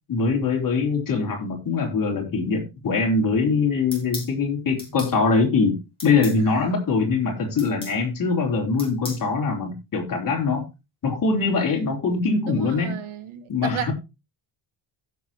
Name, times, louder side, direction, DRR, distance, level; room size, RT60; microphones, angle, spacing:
voice 1, 0.1-5.8 6.0-10.6 11.0-13.0 13.5-13.9, left 4 dB, 40° left, 3.9 m, -23 dB
sound 1, 3.9-4.3 4.8-5.1 6.0-6.4 7.6-8.0 8.8-9.2, left 2 dB, 10° left, 5.3 m, -36 dB
voice 2, 12.5-13.9, right 9 dB, 80° right, 1.7 m, -33 dB
16.0 x 7.1 x 2.9 m
wide cardioid pair, 165°, 49 cm